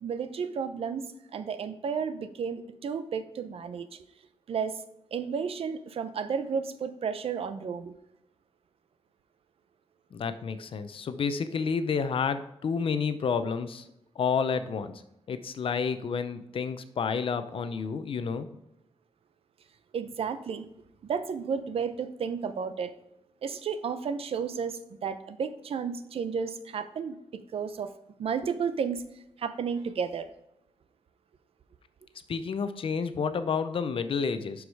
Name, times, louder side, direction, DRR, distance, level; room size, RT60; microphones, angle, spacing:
voice 1, 0.0-3.9 4.5-4.8 5.1-7.9 19.9-20.7 21.0-22.9 23.4-27.2 27.5-27.9 28.2-29.0 29.4-30.3, right 6 dB, 70° right, 11 dB, 0.7 m, -32 dB
voice 2, 10.1-13.8 14.2-15.0 15.3-18.5 32.3-34.6, left 5 dB, 65° left, 11 dB, 0.7 m, -30 dB
11.5 x 4.8 x 4.8 m, 0.84 s
wide cardioid pair, 130°, 10 cm